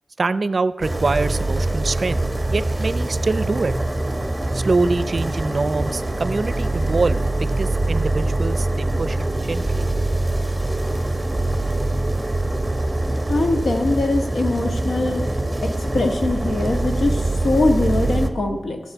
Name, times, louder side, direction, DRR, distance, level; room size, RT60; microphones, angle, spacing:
voice 1, 0.2-2.2 2.5-3.7 4.5-7.2 7.6-9.9, right 3 dB, 55° right, 15 dB, 0.5 m, -24 dB
sound 1, 0.8-18.3, right 2 dB, 15° right, 1.1 m, -23 dB
voice 2, 13.3-15.3 15.6-18.8, left 2 dB, 85° left, 4 dB, 1.4 m, -22 dB
13.5 x 6.3 x 8.3 m, 1.2 s
wide cardioid pair, 65°, 0 cm